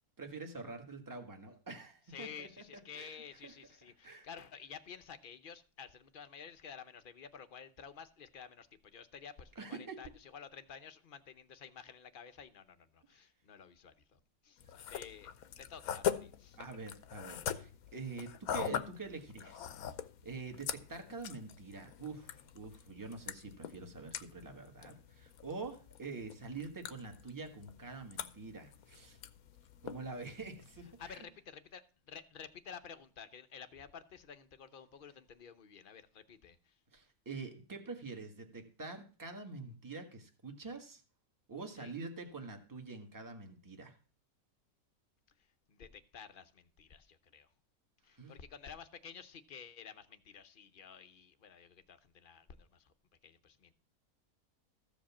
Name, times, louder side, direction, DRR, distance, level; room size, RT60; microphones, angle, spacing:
voice 1, 0.2-2.6 2.9-3.2 3.4-3.5 4.0-4.3 9.5-10.0 13.1-13.2 16.6-19.7 20.2-29.2 29.8-31.2 36.9-41.0 41.5-43.9 48.1-48.3, right 4 dB, 15° right, 1.5 m, -46 dB
voice 2, 2.1-15.3 15.6-16.6 31.0-36.8 41.8-41.9 45.4-47.5 48.0-52.9 53.2-53.7, left 7 dB, 45° left, 0.8 m, -52 dB
sound 1, 14.6-31.2, left 9 dB, 80° left, 1.2 m, -43 dB
14.0 x 5.2 x 7.1 m
omnidirectional pair, 1.5 m